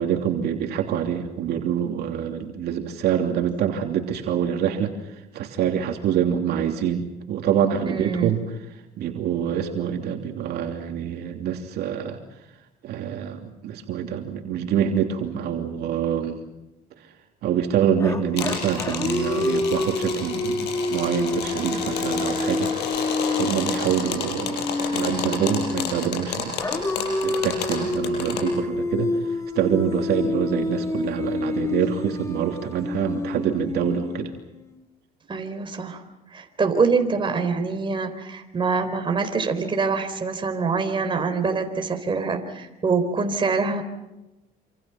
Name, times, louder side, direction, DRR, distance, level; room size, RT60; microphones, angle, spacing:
voice 1, 0.0-8.6 9.0-12.2 12.8-16.4 17.4-22.9 23.3-24.7 24.9-26.6 27.2-29.1 29.5-34.3, right 9 dB, 70° right, 3 dB, 3.1 m, -26 dB
voice 2, 7.9-8.3 35.3-36.0 36.3-43.8, right 4 dB, 30° right, 6 dB, 4.2 m, -25 dB
sound 1, 18.0-26.1 26.6-34.7, left 2 dB, 20° left, 2.7 m, -28 dB
sound 2, 18.4-28.4, left 6 dB, 85° left, 7.1 m, -30 dB
27.5 x 27.0 x 6.0 m, 0.98 s
cardioid pair, 110°, 17 cm